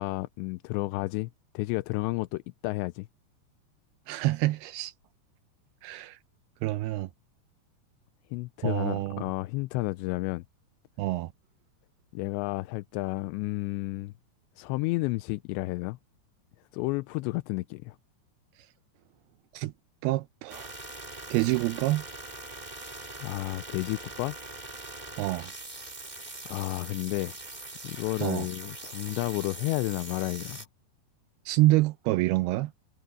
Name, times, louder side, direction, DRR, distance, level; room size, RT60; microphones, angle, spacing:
voice 1, 0.0-3.1 8.3-10.4 12.1-14.1 14.6-16.0 16.7-18.0 23.2-24.4 26.5-27.4 27.8-30.7, left 21 dB, 85° left, 2.8 m, -31 dB
voice 2, 4.1-4.9 5.8-6.2 6.6-7.1 8.6-9.3 11.0-11.3 19.5-19.7 20.0-20.7 21.3-22.1 25.2-25.5 28.2-28.5 31.5-32.7, right 18 dB, 80° right, 2.3 m, -27 dB
sound 1, 20.5-30.7, right 2 dB, 15° right, 1.5 m, -42 dB
omnidirectional pair, 5.0 m